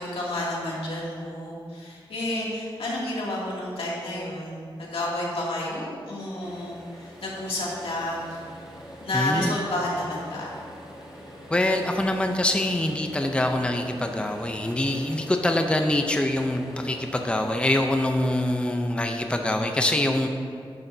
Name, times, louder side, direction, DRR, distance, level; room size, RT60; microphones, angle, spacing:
voice 1, 0.0-8.4 9.0-10.5, left 1 dB, 90° left, -5 dB, 2.5 m, -30 dB
sound 1, 6.4-18.6, equal, 5° right, 2.6 m, -44 dB
voice 2, 9.1-9.6 11.5-20.3, left 1 dB, 10° left, 4 dB, 0.6 m, -24 dB
11.0 x 11.0 x 2.7 m, 2.2 s
wide cardioid pair, 115°, 9 cm